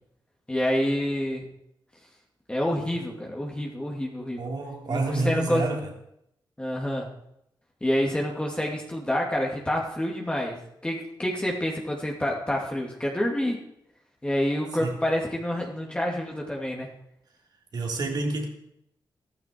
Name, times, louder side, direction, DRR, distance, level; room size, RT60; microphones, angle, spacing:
voice 1, 0.5-1.4 2.5-4.4 4.9-5.7 6.6-7.1 7.8-10.6 10.8-13.6 14.2-16.9, left 1 dB, 15° left, -1 dB, 2.6 m, -28 dB
voice 2, 4.4-5.9 14.8-15.0 17.7-18.5, right 2 dB, 60° right, 1 dB, 3.6 m, -28 dB
15.0 x 14.5 x 4.6 m, 0.77 s
wide cardioid pair, 115°, 8 cm